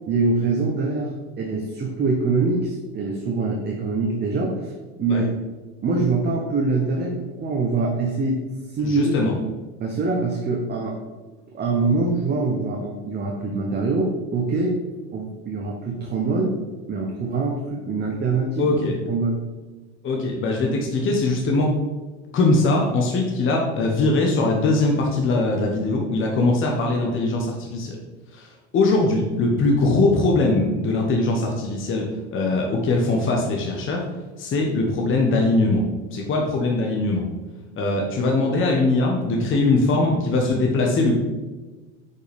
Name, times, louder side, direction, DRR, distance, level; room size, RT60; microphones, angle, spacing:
voice 1, 0.1-1.1 1.4-4.7 5.0-5.4 5.8-8.4 8.7-9.2 9.8-11.0 11.5-14.8 15.1-16.6 16.9-18.8 19.1-19.4, right 3 dB, 30° right, 0 dB, 1.0 m, -24 dB
voice 2, 8.8-9.3 18.6-18.9 20.0-21.7 22.3-28.0 28.3-28.5 28.7-34.0 34.4-35.8 36.1-37.2 37.8-41.1, left 2 dB, 35° left, 0 dB, 1.1 m, -21 dB
6.2 x 5.4 x 3.5 m, 1.2 s
hypercardioid pair, 95°, 35 cm